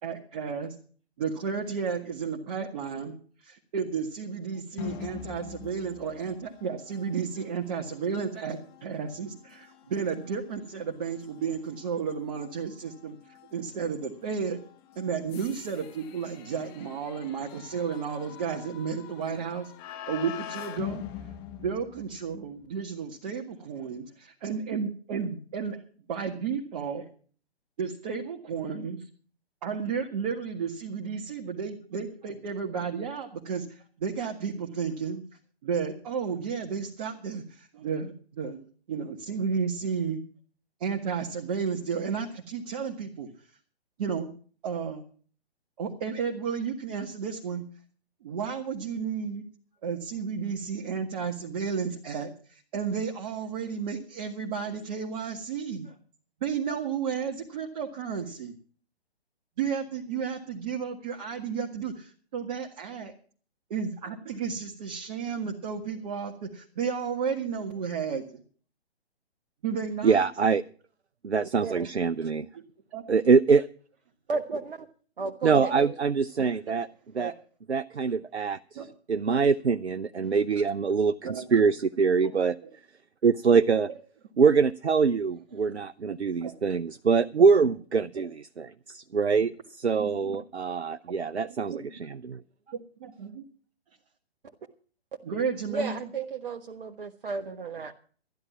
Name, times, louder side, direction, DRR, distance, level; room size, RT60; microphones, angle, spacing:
voice 1, 0.0-0.7 1.2-3.2 3.4-14.6 15.0-19.7 20.1-21.0 21.6-25.8 26.1-27.1 27.8-29.1 29.6-35.2 35.6-40.2 40.8-43.3 44.0-44.3 44.6-45.0 45.8-47.7 48.2-49.4 49.8-55.9 56.4-58.5 59.6-63.1 63.7-68.4 69.6-70.3 72.9-73.0 77.2-77.4 78.8-78.9 81.2-81.5 82.2-82.3 82.6-82.7 86.4-86.5 90.0-90.4 91.7-91.8 92.7-93.4 95.2-96.1, right 6 dB, 35° right, 1 dB, 1.8 m, -32 dB
sound 1, 4.8-22.5, left 12 dB, 25° left, 1.3 m, -44 dB
voice 2, 70.0-70.6 71.2-72.5 73.1-73.7 75.4-76.9 77.1-77.3 77.7-78.8 79.1-82.6 83.2-83.9 84.4-92.4, right 5 dB, 85° right, 14 dB, 0.6 m, -24 dB
voice 3, 74.3-74.9 75.2-75.9 95.7-97.9, right 4 dB, 55° right, 5 dB, 1.3 m, -33 dB
13.5 x 11.0 x 6.0 m, 0.43 s
figure-of-eight pair, 130°, 32 cm